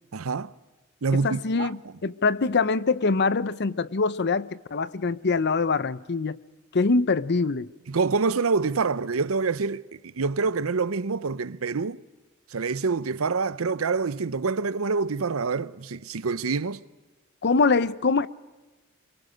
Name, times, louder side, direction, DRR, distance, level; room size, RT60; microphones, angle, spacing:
voice 1, 0.1-0.5 1.0-1.7 7.9-12.0 12.5-16.8, right 4 dB, 80° right, 0.7 m, -26 dB
voice 2, 1.1-6.4 6.7-7.7 17.4-18.3, left 4 dB, 55° left, 0.7 m, -24 dB
24.5 x 22.5 x 6.5 m
head